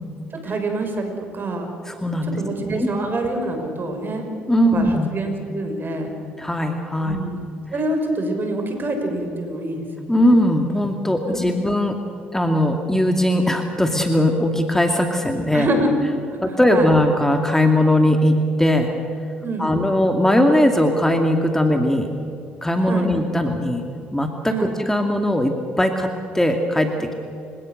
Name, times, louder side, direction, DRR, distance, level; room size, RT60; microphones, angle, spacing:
voice 1, 0.4-1.7 2.2-4.3 4.7-6.2 7.0-7.5 7.7-10.2 11.3-11.4 15.5-15.9 16.5-16.9 19.4-19.8 22.8-23.1 24.5-24.7, right 2 dB, 40° right, 4 dB, 6.1 m, -26 dB
voice 2, 1.9-2.4 2.8-2.9 4.5-5.1 6.4-7.2 10.1-12.0 12.3-15.7 16.4-18.9 19.6-22.1 22.6-23.8 24.1-27.1, left 1 dB, 10° left, 4 dB, 2.4 m, -19 dB
30.0 x 17.5 x 6.6 m, 2.6 s
hypercardioid pair, 55°, 5 cm